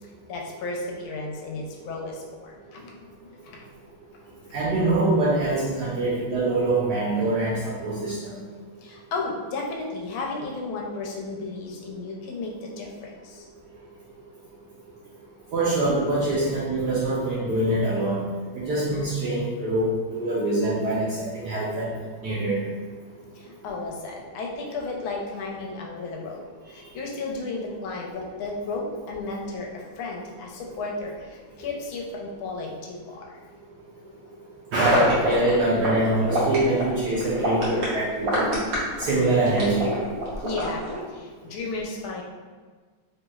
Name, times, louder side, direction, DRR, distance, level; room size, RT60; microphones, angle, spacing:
voice 1, 0.0-3.7 8.8-13.5 23.3-33.4 34.0-34.4 40.4-42.2, left 3 dB, 80° left, -1 dB, 1.4 m, -34 dB
voice 2, 4.5-8.2 15.5-18.2 18.5-21.9 22.2-22.6 34.7-38.6 39.0-39.9, right 2 dB, 75° right, -6 dB, 1.0 m, -24 dB
sound 1, 34.8-41.0, right 1 dB, 55° right, 1.0 m, -26 dB
3.4 x 2.9 x 2.2 m, 1.4 s
omnidirectional pair, 2.2 m